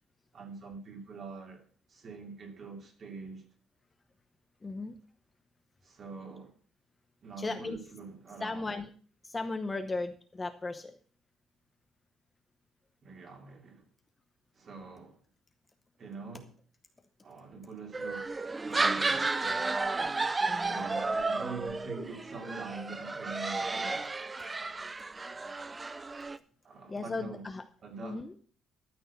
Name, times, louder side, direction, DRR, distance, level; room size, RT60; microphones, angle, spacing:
voice 1, 0.3-1.6 1.9-3.5 5.8-6.5 7.2-8.7 13.0-13.9 14.5-15.2 16.0-16.5 17.2-19.9 20.6-24.0 26.2-26.4 26.6-27.4 27.8-28.2, right 4 dB, 35° right, 2.7 m, -44 dB
voice 2, 4.6-5.0 7.4-7.8 8.4-8.9 9.2-10.9 20.4-20.9 26.9-27.6 28.0-28.4, left 3 dB, 15° left, 0.8 m, -36 dB
sound 1, 17.9-26.4, right 3 dB, 15° right, 0.5 m, -32 dB
13.0 x 6.4 x 7.1 m
cardioid pair, 160°, 0 cm